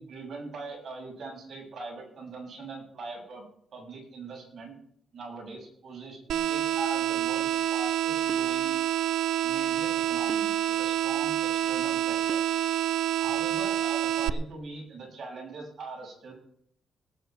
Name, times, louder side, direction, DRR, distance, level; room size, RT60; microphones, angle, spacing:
voice 1, 0.0-3.4 3.7-4.7 5.1-8.8 9.4-12.4 13.2-16.3, right 3 dB, 50° right, -1 dB, 7.2 m, -41 dB
sound 1, 6.3-14.3, right 11 dB, 80° right, 0.5 m, -27 dB
19.5 x 8.6 x 4.8 m, 0.65 s
cardioid pair, 135°, 0 cm